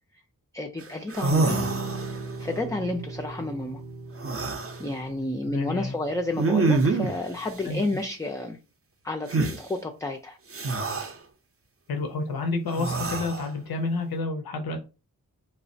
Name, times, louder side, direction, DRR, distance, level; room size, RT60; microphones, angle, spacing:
voice 1, 0.5-1.8 2.4-3.8 4.8-8.6 9.0-10.4, left 2 dB, 10° left, 3 dB, 0.3 m, -31 dB
sound 1, 0.8-0.9 1.1-2.4 4.2-4.8 6.4-7.2 9.3-9.6 10.5-11.1 12.7-13.5, right 3 dB, 40° right, 0.5 m, -26 dB
sound 2, 1.4-7.7, right 3 dB, 85° right, 0.8 m, -38 dB
voice 2, 5.5-5.9 7.6-8.0 11.9-14.8, left 3 dB, 85° left, 4 dB, 0.5 m, -30 dB
3.1 x 2.0 x 2.6 m, 0.31 s
wide cardioid pair, 45°, 36 cm